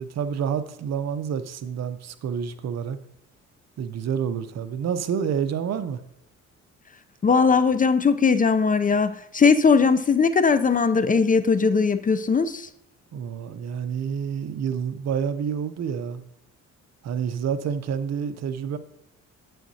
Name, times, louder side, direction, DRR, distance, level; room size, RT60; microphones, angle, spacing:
voice 1, 0.0-3.0 3.8-6.0 13.1-16.2 17.0-18.8, right 7 dB, 60° right, 0.7 m, -28 dB
voice 2, 7.2-12.7, left 5 dB, 30° left, 0.5 m, -19 dB
9.0 x 8.5 x 2.8 m
cardioid pair, 90°, 30 cm